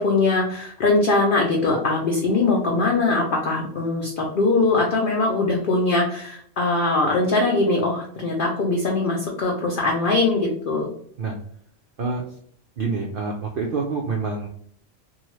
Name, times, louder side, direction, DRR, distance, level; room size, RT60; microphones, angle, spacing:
voice 1, 0.0-10.9, left 3 dB, 60° left, -2 dB, 0.6 m, -21 dB
voice 2, 12.8-14.5, right 4 dB, 65° right, 0 dB, 0.5 m, -26 dB
2.7 x 2.3 x 3.0 m, 0.65 s
omnidirectional pair, 1.4 m